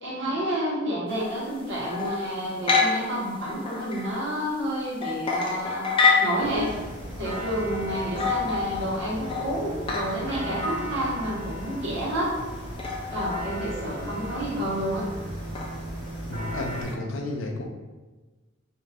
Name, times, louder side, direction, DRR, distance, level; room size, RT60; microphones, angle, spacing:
voice 1, 0.0-5.9 6.2-6.7 7.2-12.3 13.1-15.0, equal, 65° right, -7 dB, 1.1 m, -29 dB
sound 1, 1.1-16.9, left 4 dB, 25° left, 0.3 m, -30 dB
sound 2, 6.4-16.8, equal, 90° right, 1.2 m, -36 dB
voice 2, 16.3-17.6, left 1 dB, 85° left, 2 dB, 0.5 m, -32 dB
2.5 x 2.4 x 3.4 m, 1.2 s
head